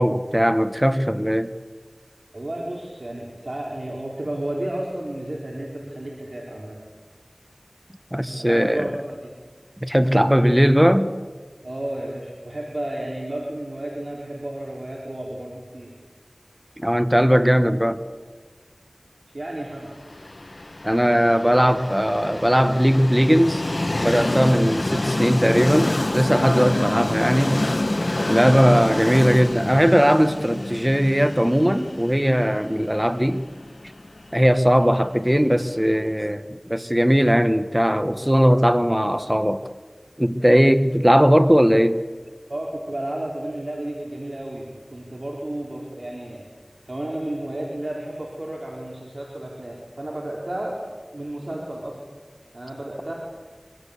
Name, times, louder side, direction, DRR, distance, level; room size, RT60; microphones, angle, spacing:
voice 1, 0.0-1.5 8.1-8.9 9.8-11.1 16.8-18.0 20.8-23.6 24.0-27.6 28.3-33.4 34.3-39.6 40.2-42.0, equal, 10° right, 10 dB, 1.3 m, -19 dB
voice 2, 2.3-6.8 8.4-9.3 11.6-15.9 19.3-19.9 42.5-46.5 46.9-50.8 51.1-52.0 52.5-53.1, right 1 dB, 55° right, -3 dB, 4.6 m, -32 dB
Train, 20.1-35.9, left 1 dB, 50° left, 1.4 m, -27 dB
25.5 x 25.0 x 8.4 m, 1.5 s
wide cardioid pair, 45°, 0 cm